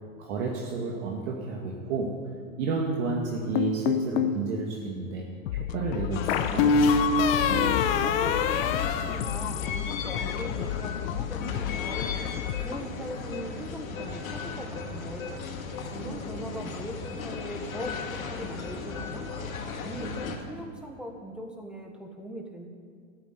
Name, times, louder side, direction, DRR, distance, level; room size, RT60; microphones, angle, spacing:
voice 1, 0.2-2.2 2.6-5.3 5.7-6.7, right 4 dB, 55° right, -2 dB, 2.3 m, -31 dB
sound 1, 3.6-4.4 6.3-9.9, left 5 dB, 45° left, 1.1 m, -24 dB
sound 2, 5.5-12.9, left 13 dB, 70° left, 0.6 m, -34 dB
sound 3, 6.1-20.4, left 4 dB, 85° left, 2.4 m, -36 dB
voice 2, 7.8-12.1 12.5-15.4 15.9-19.3 19.8-22.7, right 1 dB, ahead, 2 dB, 1.4 m, -40 dB
12.5 x 9.4 x 9.7 m, 2.1 s
hypercardioid pair, 145°, 40 cm